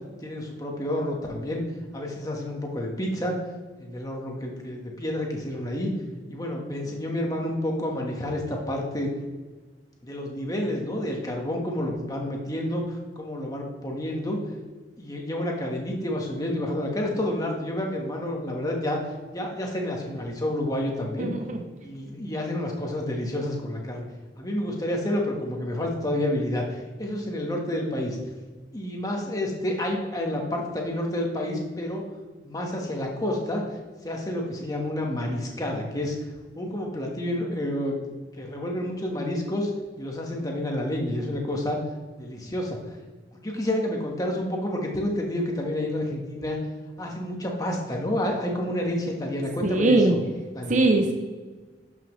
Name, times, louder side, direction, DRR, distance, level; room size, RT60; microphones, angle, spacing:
voice 1, 0.2-1.6 1.9-3.4 3.8-5.9 6.3-9.1 10.0-14.5 15.0-19.0 19.3-21.3 21.8-24.0 24.4-28.2 28.7-32.0 32.4-33.6 34.0-36.2 36.5-37.9 38.4-39.7 40.0-41.8 42.2-43.0 43.3-46.6 47.0-50.2 50.5-50.7, left 1 dB, 20° left, 0 dB, 1.4 m, -29 dB
voice 2, 21.2-21.6 49.6-50.2 50.7-51.1, right 2 dB, 45° right, 3 dB, 0.7 m, -21 dB
11.5 x 5.6 x 3.2 m, 1.3 s
head